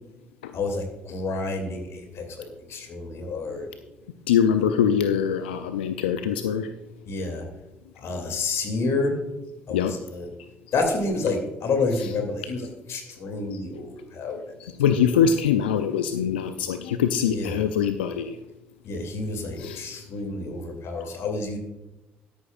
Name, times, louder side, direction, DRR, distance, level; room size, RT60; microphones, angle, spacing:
voice 1, 0.5-3.7 7.1-7.4 8.0-9.1 9.7-10.3 10.7-14.4 17.3-17.6 18.8-21.6, left 3 dB, 60° left, 4 dB, 2.6 m, -29 dB
voice 2, 4.3-6.7 9.7-9.9 12.0-12.1 13.5-13.6 14.6-18.4 19.6-19.8 21.0-21.1, left 8 dB, 85° left, 9 dB, 0.4 m, -23 dB
12.5 x 11.5 x 2.4 m, 1.0 s
hypercardioid pair, 50°, 5 cm